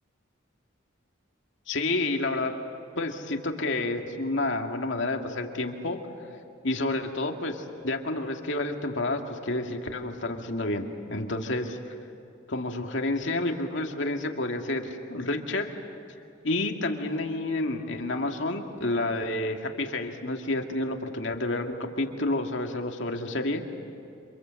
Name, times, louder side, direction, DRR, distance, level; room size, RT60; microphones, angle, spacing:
voice 1, 1.7-2.5 3.0-6.0 6.6-11.9 12.5-14.8 15.1-15.7 16.4-23.6, left 2 dB, 70° left, 3 dB, 2.2 m, -29 dB
28.0 x 27.0 x 7.7 m, 2.7 s
head